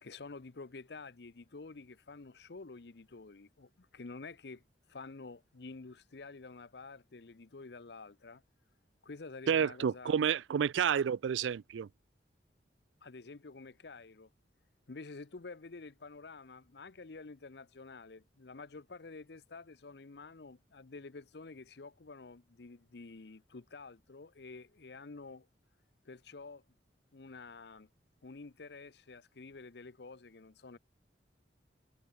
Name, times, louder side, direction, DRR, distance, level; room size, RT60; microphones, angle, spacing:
voice 1, 0.0-8.4 9.0-10.2 13.0-14.3 14.9-25.5 26.0-26.6 27.1-27.9 28.2-30.8, left 3 dB, 65° left, 0.8 m, -49 dB
voice 2, 9.5-11.9, right 8 dB, 90° right, 0.4 m, -30 dB
head